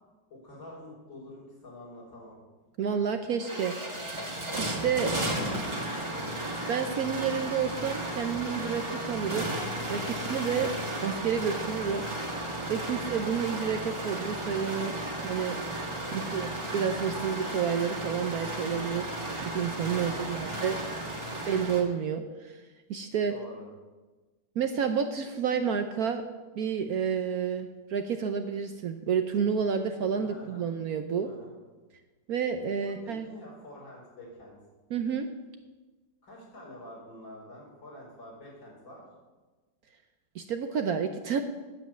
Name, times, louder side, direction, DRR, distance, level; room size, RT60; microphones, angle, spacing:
voice 1, 0.3-2.4 5.1-6.2 12.9-13.2 16.0-16.3 19.9-21.3 23.3-23.7 30.1-30.6 31.2-31.6 32.8-34.5 36.2-39.1, left 1 dB, 75° left, -5 dB, 5.4 m, -47 dB
voice 2, 2.8-3.7 4.6-5.1 6.7-9.5 9.9-10.7 11.0-12.0 12.7-14.9 15.2-15.6 16.1-19.2 19.5-20.8 21.5-22.6 22.9-23.3 24.6-26.2 26.5-31.3 32.3-33.3 34.9-35.3 40.3-41.4, right 7 dB, 65° right, 7 dB, 1.0 m, -30 dB
sound 1, 2.9-3.0 3.3-21.8, right 1 dB, 15° right, 1.5 m, -34 dB
9.3 x 7.8 x 8.5 m, 1.2 s
omnidirectional pair, 2.1 m